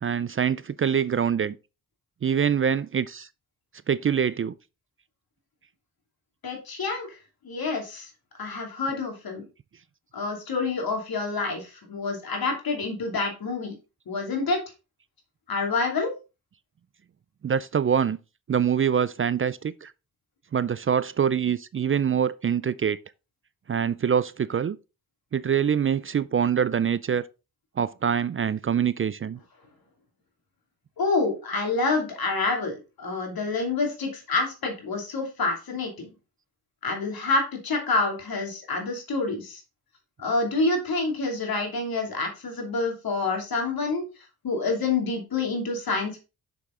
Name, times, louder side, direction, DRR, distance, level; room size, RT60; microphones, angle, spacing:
voice 1, 0.0-1.6 2.2-3.3 3.9-4.5 17.4-18.2 18.5-19.9 20.5-23.0 23.7-24.8 25.3-27.2 27.8-29.4, right 8 dB, 35° right, 0.4 m, -24 dB
voice 2, 6.4-7.2 7.4-8.1 8.4-9.4 10.1-13.7 14.1-14.6 15.5-16.1 31.0-36.1 36.8-39.6 40.2-44.0 44.4-46.2, left 3 dB, 70° left, 2.8 m, -27 dB
6.7 x 6.7 x 3.8 m
cardioid pair, 85°, 37 cm